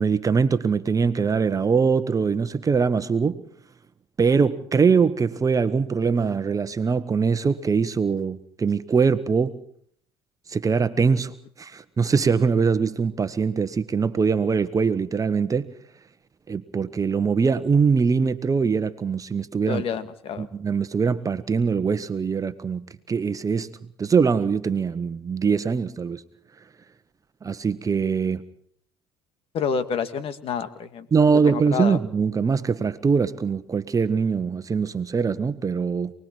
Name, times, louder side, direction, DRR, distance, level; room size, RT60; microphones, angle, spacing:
voice 1, 0.0-3.4 4.2-9.6 10.5-15.7 16.5-19.8 20.4-26.2 27.4-28.4 31.1-36.1, right 5 dB, 30° right, 1.2 m, -22 dB
voice 2, 19.7-20.5 29.5-32.0, left 6 dB, 55° left, 2.1 m, -29 dB
28.5 x 20.5 x 4.6 m
hypercardioid pair, 70°, 11 cm